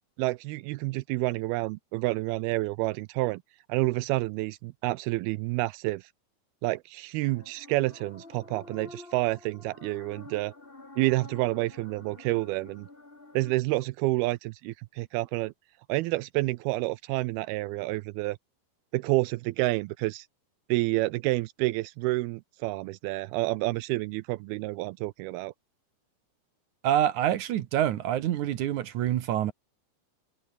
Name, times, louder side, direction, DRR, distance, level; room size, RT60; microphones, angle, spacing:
voice 1, 0.2-3.4 3.7-6.0 6.6-10.5 11.0-12.9 13.3-15.5 15.9-18.4 18.9-20.3 20.7-25.5, right 20 dB, 80° right, 2.5 m, -29 dB
sound 1, 7.2-13.5, left 2 dB, 15° left, 2.6 m, -49 dB
voice 2, 26.8-29.5, right 11 dB, 65° right, 2.0 m, -26 dB
omnidirectional pair, 4.5 m